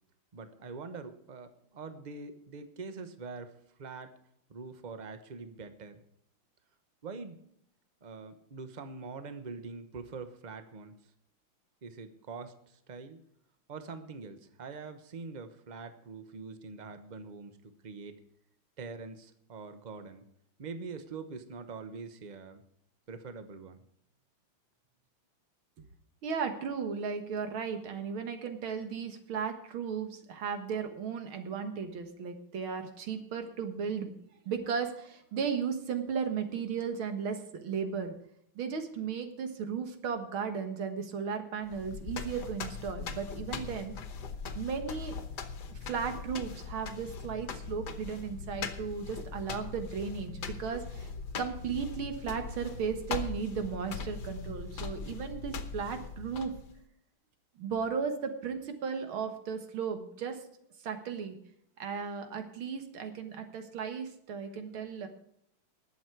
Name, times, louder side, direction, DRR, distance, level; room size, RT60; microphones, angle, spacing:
voice 1, 0.3-3.5 3.8-4.1 4.5-6.0 7.0-7.4 8.0-10.9 11.8-13.2 13.7-18.2 18.8-20.3 20.6-22.6 23.1-23.8, right 4 dB, 35° right, 9 dB, 0.7 m, -44 dB
voice 2, 26.2-34.1 34.5-38.1 38.6-44.0 44.5-45.2 45.7-51.1 51.4-56.5 57.6-60.4 60.8-61.4 61.8-65.1, right 6 dB, 80° right, 7 dB, 2.3 m, -35 dB
sound 1, 41.7-56.8, left 5 dB, 60° left, 1.6 m, -40 dB
19.5 x 7.3 x 4.6 m, 0.72 s
omnidirectional pair, 2.3 m